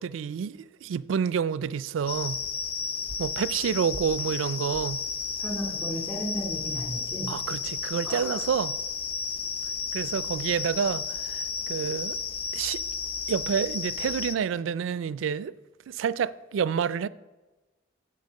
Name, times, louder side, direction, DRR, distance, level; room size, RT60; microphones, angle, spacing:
voice 1, 0.0-2.4 3.2-5.0 7.3-8.7 9.9-12.2 12.5-12.8 13.3-15.5 15.9-17.1, right 7 dB, 85° right, 0.3 m, -28 dB
sound 1, 2.1-14.4, left 5 dB, 30° left, 0.5 m, -33 dB
voice 2, 5.4-7.3 8.0-8.4, equal, 10° left, 2.3 m, -34 dB
10.5 x 7.8 x 5.3 m
head